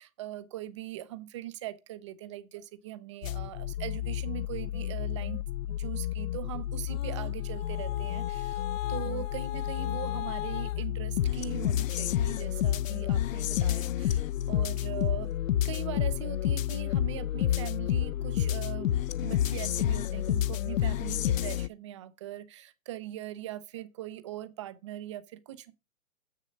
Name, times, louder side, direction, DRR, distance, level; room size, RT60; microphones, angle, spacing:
voice 1, 0.0-5.4 5.8-8.6 8.9-15.3 15.6-18.9 19.2-25.7, right 13 dB, 20° right, 0.5 m, -41 dB
sound 1, 3.2-21.7, left 11 dB, 70° left, 0.6 m, -30 dB
7.4 x 6.6 x 5.1 m
hypercardioid pair, 155°, 42 cm